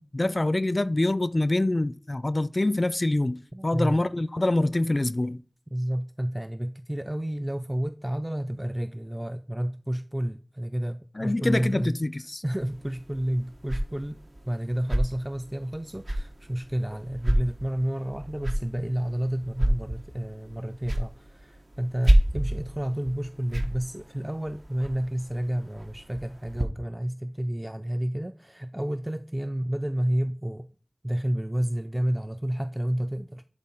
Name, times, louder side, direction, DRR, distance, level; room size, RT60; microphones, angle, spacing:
voice 1, 0.1-5.4 11.2-12.4, left 2 dB, 50° left, 0.4 m, -25 dB
voice 2, 3.5-4.0 5.7-12.0 12.4-30.7 31.0-33.4, right 1 dB, 15° right, 0.4 m, -30 dB
sound 1, 12.6-26.6, right 1 dB, 70° right, 1.2 m, -30 dB
11.0 x 3.8 x 4.5 m
wide cardioid pair, 45°, 0 cm